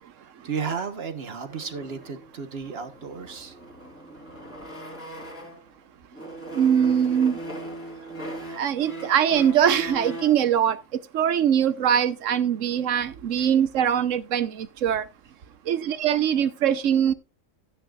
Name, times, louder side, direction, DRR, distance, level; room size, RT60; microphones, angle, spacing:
voice 1, 0.4-3.5 13.3-13.5, right 6 dB, 50° right, 1.4 m, -33 dB
sound 1, 1.5-5.7 6.1-10.4, right 1 dB, 10° left, 3.6 m, -39 dB
voice 2, 6.5-7.4 8.6-10.8 11.1-15.0 15.7-17.1, right 9 dB, 75° right, 1.2 m, -22 dB
14.0 x 9.6 x 2.4 m
omnidirectional pair, 1.3 m